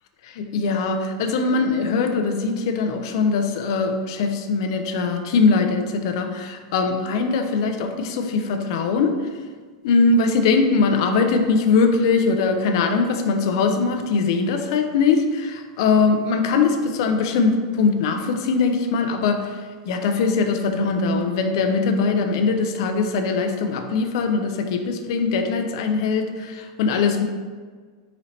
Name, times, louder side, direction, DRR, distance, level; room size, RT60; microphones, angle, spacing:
voice 1, 0.2-9.2 9.8-19.5 19.9-27.2, left 4 dB, 50° left, 6 dB, 0.4 m, -21 dB
3.9 x 3.1 x 2.8 m, 1.5 s
supercardioid pair, 170°, 3 cm